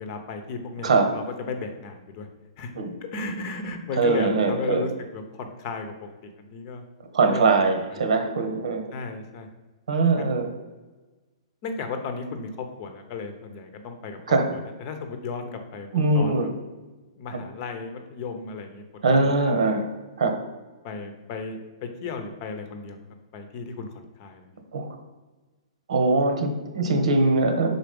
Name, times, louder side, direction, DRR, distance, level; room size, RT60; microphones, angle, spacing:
voice 1, 0.0-2.3 2.6-2.7 3.1-6.8 7.2-8.0 8.9-9.5 10.2-10.3 11.6-14.2 14.5-15.9 16.1-16.5 17.2-18.8 19.2-19.7 20.8-23.0 23.3-24.5, left 4 dB, 30° left, 6 dB, 0.8 m, -35 dB
voice 2, 4.0-4.9 7.1-8.9 9.9-10.5 14.3-14.5 15.9-16.5 17.3-17.4 19.0-19.9 20.2-20.3 24.7-24.9 25.9-27.8, right 3 dB, 80° right, 6 dB, 1.2 m, -22 dB
5.9 x 4.2 x 5.2 m, 1.2 s
hypercardioid pair, 165°, 3 cm